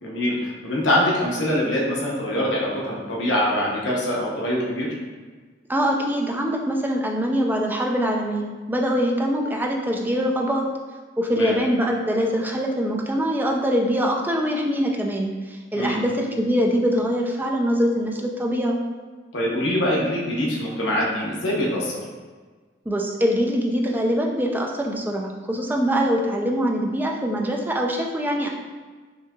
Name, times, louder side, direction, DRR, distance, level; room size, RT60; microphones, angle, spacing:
voice 1, 0.0-4.9 11.3-11.5 15.7-16.0 19.3-22.0, left 1 dB, 70° left, -4 dB, 0.9 m, -24 dB
voice 2, 5.7-10.6 11.2-18.8 22.9-28.5, equal, 10° right, 0 dB, 0.4 m, -23 dB
5.6 x 2.7 x 2.3 m, 1.4 s
head